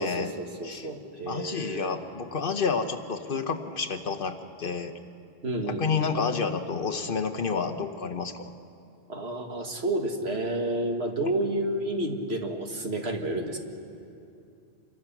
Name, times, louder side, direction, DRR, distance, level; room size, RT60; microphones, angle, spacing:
voice 1, 0.0-2.0 5.4-5.9 9.1-13.6, right 1 dB, 80° right, 3 dB, 2.0 m, -30 dB
voice 2, 1.3-4.9 5.6-8.4, left 5 dB, 60° left, 8 dB, 1.2 m, -29 dB
27.5 x 22.5 x 6.1 m, 2.6 s
omnidirectional pair, 1.1 m